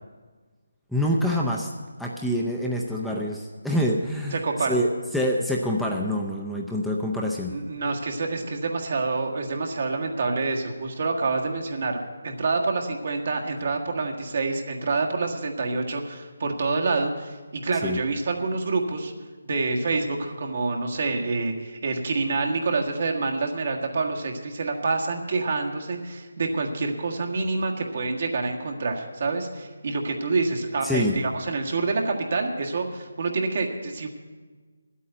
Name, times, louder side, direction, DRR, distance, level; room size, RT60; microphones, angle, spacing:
voice 1, 0.9-1.7 2.0-7.5 17.8-18.0 30.8-31.2, equal, ahead, -3 dB, 0.6 m, -26 dB
voice 2, 4.3-4.8 7.4-19.1 19.4-34.1, right 3 dB, 55° right, 1 dB, 1.6 m, -27 dB
10.5 x 8.4 x 8.9 m, 1.4 s
figure-of-eight pair, 160°, 0 cm